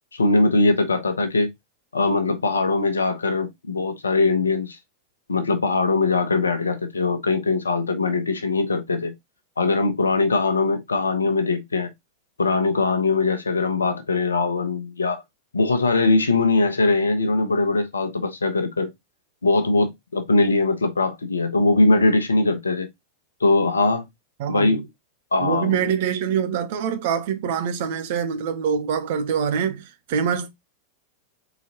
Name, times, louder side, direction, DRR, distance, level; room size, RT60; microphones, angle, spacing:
voice 1, 0.1-1.5 1.9-4.8 5.3-9.1 9.6-11.9 12.4-15.2 15.5-18.9 19.4-22.9 23.4-24.0 24.5-24.8 25.3-25.8, left 3 dB, 75° left, 0.8 m, -21 dB
voice 2, 24.4-24.8 25.4-30.5, right 7 dB, 50° right, 0.7 m, -25 dB
4.0 x 3.9 x 2.9 m
figure-of-eight pair, 90°, 0 cm